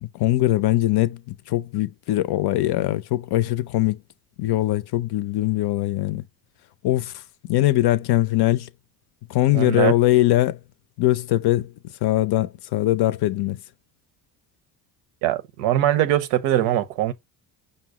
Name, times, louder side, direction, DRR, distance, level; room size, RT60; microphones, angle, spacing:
voice 1, 0.0-4.0 4.4-6.2 6.8-7.2 7.5-8.7 9.3-10.6 11.0-11.7 12.0-13.6, left 16 dB, 55° left, 0.5 m, -21 dB
voice 2, 9.5-9.9 15.2-17.1, right 13 dB, 85° right, 0.7 m, -21 dB
5.3 x 2.1 x 4.6 m
supercardioid pair, 65°, 49 cm